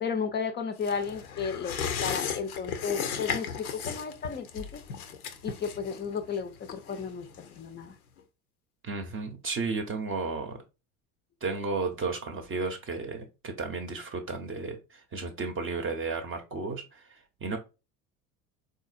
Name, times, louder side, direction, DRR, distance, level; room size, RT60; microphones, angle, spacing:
voice 1, 0.0-4.8 5.4-7.9, left 6 dB, 25° left, 0.5 m, -34 dB
sound 1, 0.8-7.9 8.2-8.3, left 7 dB, 85° left, 0.6 m, -36 dB
voice 2, 8.8-10.6 11.4-17.6, right 3 dB, 30° right, 0.7 m, -33 dB
3.7 x 2.6 x 2.4 m
hypercardioid pair, 70°, 43 cm